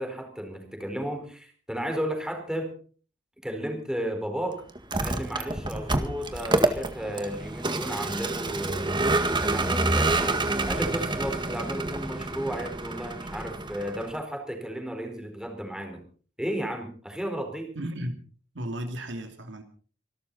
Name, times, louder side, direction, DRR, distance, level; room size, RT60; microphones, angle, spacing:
voice 1, 0.0-2.7 3.4-4.6 5.0-9.0 9.4-10.4 10.6-16.0 16.4-17.7, right 1 dB, 5° right, 3 dB, 4.3 m, -33 dB
Vehicle, 4.8-14.1, right 2 dB, 25° right, 1.8 m, -28 dB
voice 2, 17.8-18.2 18.5-19.6, right 1 dB, 70° right, 6 dB, 2.6 m, -34 dB
26.0 x 12.5 x 4.1 m, 0.42 s
head